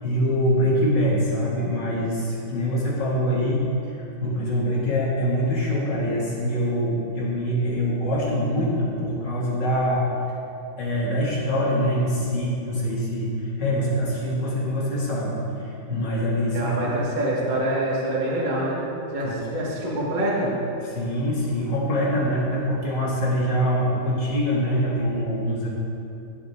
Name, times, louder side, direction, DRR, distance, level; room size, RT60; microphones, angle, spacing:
voice 1, 0.0-10.0 10.8-16.9 19.2-19.4 20.9-25.7, equal, 65° left, -6 dB, 3.0 m, -24 dB
voice 2, 16.5-18.8 19.1-20.5, right 1 dB, 25° right, -5 dB, 1.6 m, -25 dB
16.0 x 7.2 x 3.7 m, 2.8 s
omnidirectional pair, 2.1 m